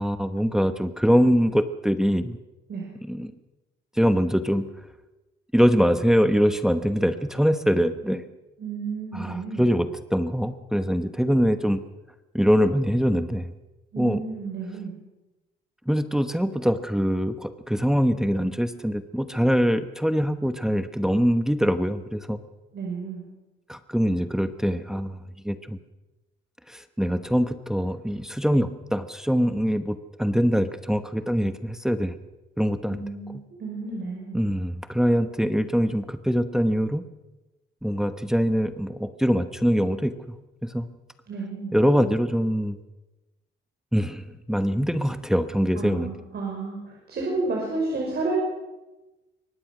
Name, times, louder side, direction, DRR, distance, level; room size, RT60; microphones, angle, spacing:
voice 1, 0.0-2.4 3.1-3.3 3.9-4.7 5.5-8.2 9.1-11.8 12.3-13.5 14.0-14.2 15.9-22.4 23.7-25.8 26.7-32.1 32.6-33.0 34.3-37.0 37.8-40.3 40.6-40.9 41.7-42.8 43.9-46.1, equal, ahead, 9 dB, 1.1 m, -23 dB
voice 2, 8.6-9.7 13.9-14.9 22.7-23.2 32.9-33.3 33.6-34.4 41.3-41.8 45.8-48.4, right 3 dB, 55° right, -1 dB, 5.5 m, -31 dB
24.0 x 18.5 x 6.2 m, 1.1 s
cardioid pair, 90°, 20 cm